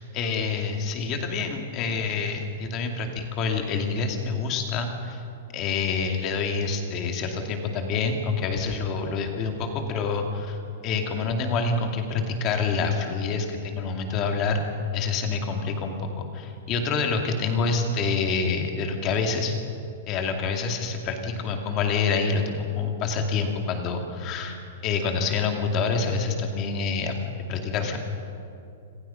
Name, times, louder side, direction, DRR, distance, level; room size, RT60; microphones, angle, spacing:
voice 1, 0.0-5.2 5.5-10.6 10.8-14.6 14.9-19.6 20.1-27.2 27.5-28.0, left 4 dB, 20° left, 4 dB, 2.5 m, -27 dB
27.5 x 27.0 x 5.8 m, 2.6 s
supercardioid pair, 180°, 0 cm